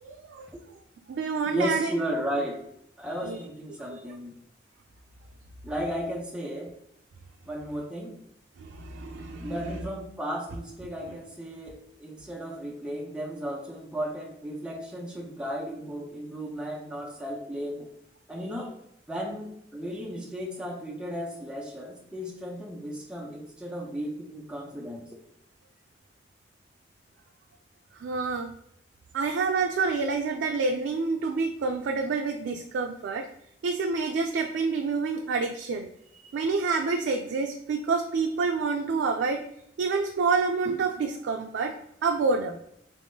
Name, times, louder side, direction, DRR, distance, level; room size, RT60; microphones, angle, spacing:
voice 1, 0.0-0.5 1.1-1.9 3.2-3.4 8.6-9.8 27.9-28.5 29.1-33.3 33.6-35.9 36.3-39.4 39.8-41.7 42.0-42.6, right 4 dB, 85° right, 3 dB, 0.3 m, -28 dB
voice 2, 1.5-2.6 3.0-4.3 5.6-6.7 7.4-8.2 9.4-17.9 18.3-18.8 19.1-25.1, equal, 5° right, -2 dB, 0.5 m, -34 dB
3.5 x 3.1 x 2.6 m, 0.76 s
head